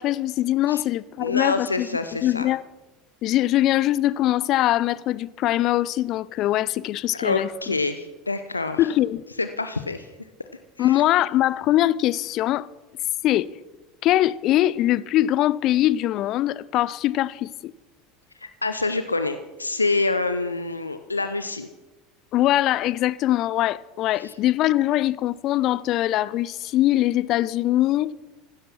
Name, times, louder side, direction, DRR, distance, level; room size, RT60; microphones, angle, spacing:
voice 1, 0.0-1.9 2.2-2.6 3.2-7.8 8.8-9.2 10.8-12.7 13.2-13.5 14.0-17.7 22.3-28.1, left 14 dB, 45° left, 0.5 m, -22 dB
voice 2, 1.2-2.5 7.2-8.8 9.4-10.1 10.8-11.0 18.6-21.7 24.2-24.3, left 3 dB, 90° left, 0.6 m, -26 dB
15.5 x 12.0 x 6.1 m
figure-of-eight pair, 75°, 0 cm